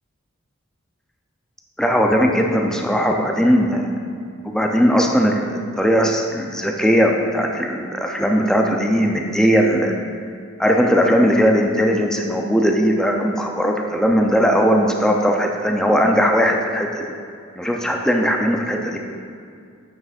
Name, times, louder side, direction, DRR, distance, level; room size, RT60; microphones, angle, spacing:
voice 1, 1.8-4.1 4.4-9.9 10.6-17.1 17.6-19.0, equal, 5° left, 1 dB, 0.4 m, -18 dB
9.1 x 6.2 x 2.4 m, 2.3 s
head